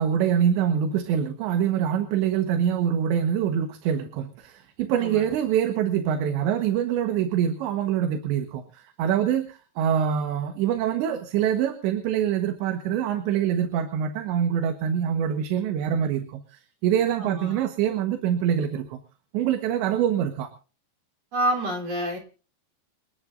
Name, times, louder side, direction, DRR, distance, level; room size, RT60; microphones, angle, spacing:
voice 1, 0.0-19.0 19.3-20.5, right 9 dB, 80° right, 7 dB, 3.6 m, -25 dB
voice 2, 17.2-17.6 21.3-22.2, right 1 dB, 35° right, 1 dB, 4.5 m, -28 dB
29.5 x 10.5 x 2.6 m, 0.37 s
omnidirectional pair, 5.2 m